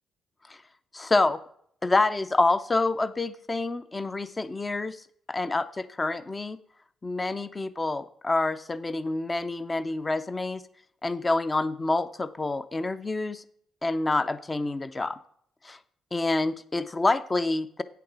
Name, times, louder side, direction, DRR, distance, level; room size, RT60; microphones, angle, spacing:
voice 1, 0.9-1.4 1.8-5.0 5.3-6.6 7.0-10.6 11.0-13.4 13.8-15.2 15.6-15.8 16.1-17.8, left 2 dB, 25° left, 13 dB, 0.5 m, -27 dB
8.8 x 6.8 x 4.6 m, 0.66 s
cardioid pair, 90°, 0 cm